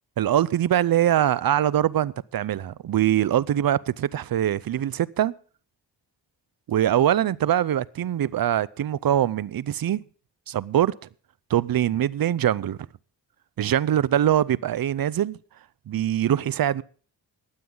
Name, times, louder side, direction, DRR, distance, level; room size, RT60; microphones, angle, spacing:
voice 1, 0.2-5.3 6.7-10.0 10.5-10.9 11.5-12.8 13.6-15.4 15.9-16.8, right 11 dB, 55° right, 0.6 m, -23 dB
21.0 x 7.7 x 3.8 m
supercardioid pair, 40°, 44 cm